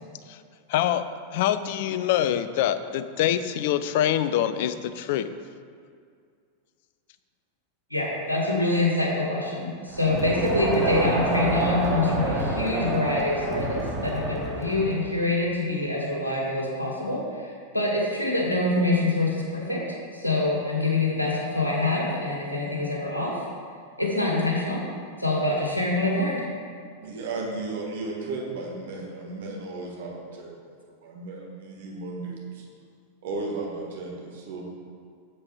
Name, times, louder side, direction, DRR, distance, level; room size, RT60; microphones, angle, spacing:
voice 1, 0.7-1.0 1.3-5.3, left 11 dB, 50° left, 11 dB, 0.5 m, -25 dB
voice 2, 7.9-23.4 24.0-24.8 25.2-26.4, left 2 dB, 85° left, -2 dB, 2.0 m, -25 dB
Crowd, 9.9-15.1, right 2 dB, 10° right, 1.7 m, -28 dB
voice 3, 27.0-32.7 33.2-34.7, right 3 dB, 55° right, -2 dB, 1.9 m, -35 dB
7.7 x 7.6 x 4.8 m, 2.2 s
figure-of-eight pair, 90°, 0 cm